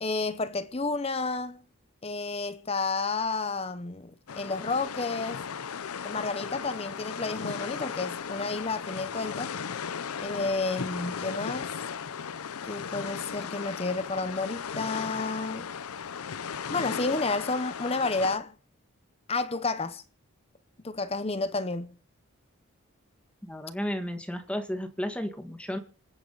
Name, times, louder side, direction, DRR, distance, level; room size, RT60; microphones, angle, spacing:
voice 1, 0.0-1.6 2.0-5.4 6.0-9.5 10.2-11.7 12.6-15.7 16.7-18.5 19.3-20.0 20.8-22.0, left 3 dB, 25° left, 0.7 m, -31 dB
sound 1, 4.3-18.4, left 6 dB, 85° left, 0.6 m, -36 dB
voice 2, 23.4-25.8, equal, 5° left, 1.5 m, -33 dB
26.5 x 9.6 x 3.9 m
head